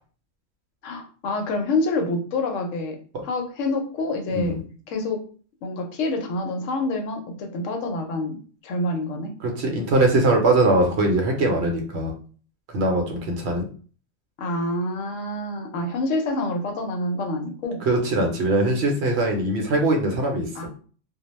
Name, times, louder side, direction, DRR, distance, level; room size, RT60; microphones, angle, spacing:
voice 1, 0.8-4.6 4.9-5.2 5.6-8.4 8.6-9.4 14.4-17.9 20.5-20.7, left 2 dB, 75° left, 4 dB, 0.9 m, -27 dB
voice 2, 9.4-12.1 12.7-13.7 17.9-20.5, right 2 dB, 65° right, 2 dB, 0.8 m, -21 dB
2.3 x 2.1 x 3.0 m, 0.41 s
omnidirectional pair, 1.3 m